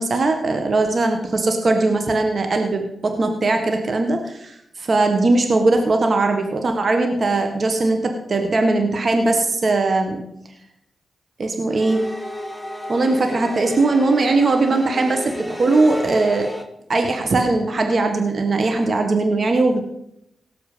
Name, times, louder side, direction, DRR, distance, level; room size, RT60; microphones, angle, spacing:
voice 1, 0.0-10.2 11.4-12.1 12.9-16.5 16.9-19.8, right 2 dB, 55° right, 5 dB, 1.6 m, -20 dB
sound 1, 11.7-16.6, equal, ahead, 1.7 m, -32 dB
17.5 x 7.1 x 5.1 m, 0.79 s
cardioid pair, 55°, 0 cm